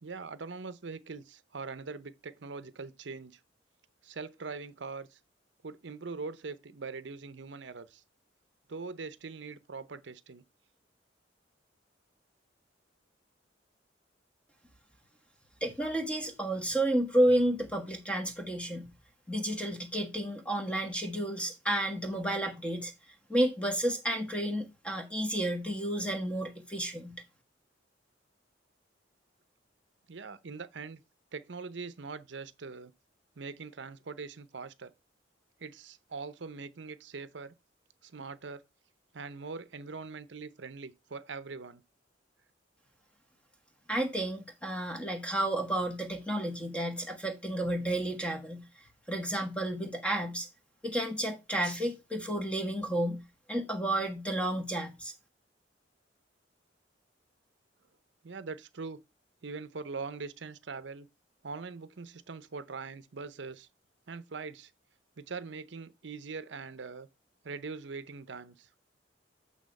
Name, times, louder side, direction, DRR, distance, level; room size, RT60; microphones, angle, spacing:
voice 1, 0.0-3.4 4.0-5.2 5.6-8.0 8.7-10.4 30.1-31.0 31.3-32.9 33.4-34.9 35.6-37.5 38.0-38.6 39.1-41.8 58.2-59.0 59.4-61.1 61.4-63.7 64.1-64.7 65.2-67.1 67.4-68.7, right 4 dB, 70° right, 0.7 m, -42 dB
voice 2, 15.6-18.9 19.3-22.9 23.3-27.2 43.9-48.7 49.1-50.5 50.8-53.2 53.5-55.1, right 1 dB, 5° left, 1.4 m, -31 dB
8.6 x 3.5 x 5.3 m
head